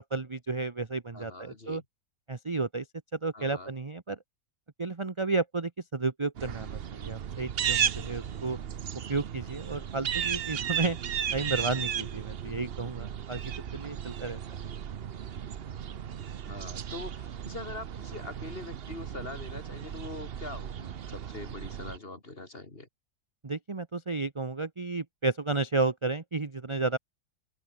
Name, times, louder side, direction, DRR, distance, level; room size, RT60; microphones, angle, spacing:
voice 1, 0.0-1.8 2.3-2.8 3.1-4.2 4.8-8.6 9.1-11.0 11.3-13.4 13.7-14.4 23.4-27.0, right 3 dB, 25° right, 0.8 m, -32 dB
voice 2, 1.1-1.8 3.3-3.7 16.4-22.9, left 2 dB, 35° left, 3.5 m, -43 dB
sound 1, 6.4-22.0, right 8 dB, 50° right, 0.8 m, -35 dB
open air
omnidirectional pair, 1.8 m